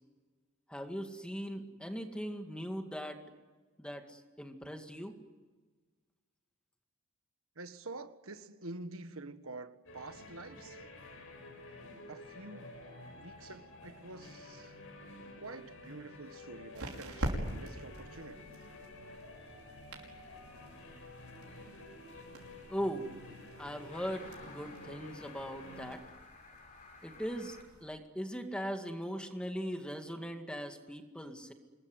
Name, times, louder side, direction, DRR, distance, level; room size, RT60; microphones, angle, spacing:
voice 1, 0.7-3.2 3.8-5.1 22.7-23.1 23.6-26.0 27.0-31.5, equal, 5° left, 5 dB, 2.2 m, -39 dB
voice 2, 7.5-10.8 12.1-12.7 13.1-14.8 15.4-18.5, right 2 dB, 70° right, 9 dB, 1.6 m, -47 dB
sound 1, 9.9-26.0, left 2 dB, 65° left, 7.1 m, -51 dB
sound 2, 15.4-27.8, right 1 dB, 85° right, 5.8 m, -46 dB
sound 3, 23.9-27.6, left 3 dB, 40° left, 6.4 m, -54 dB
27.0 x 21.5 x 9.8 m, 1.4 s
head